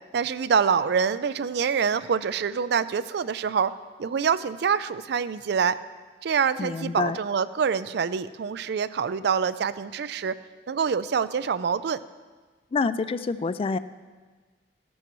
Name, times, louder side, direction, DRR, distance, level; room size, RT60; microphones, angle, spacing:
voice 1, 0.1-3.7 4.0-5.8 6.2-10.4 10.7-12.0, right 6 dB, 65° right, 14 dB, 0.4 m, -25 dB
voice 2, 6.6-7.2 12.7-13.8, left 4 dB, 30° left, 14 dB, 0.3 m, -27 dB
14.5 x 12.5 x 3.1 m, 1.4 s
head